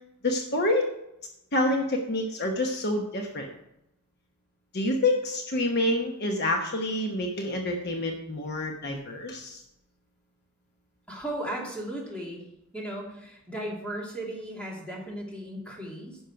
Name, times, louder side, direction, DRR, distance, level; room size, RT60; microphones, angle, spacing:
voice 1, 0.2-0.9 1.5-3.5 4.7-9.6, left 1 dB, 45° left, 2 dB, 1.0 m, -27 dB
voice 2, 11.1-12.4 12.7-16.2, right 1 dB, 5° left, -3 dB, 2.6 m, -36 dB
10.5 x 6.3 x 5.7 m, 0.82 s
head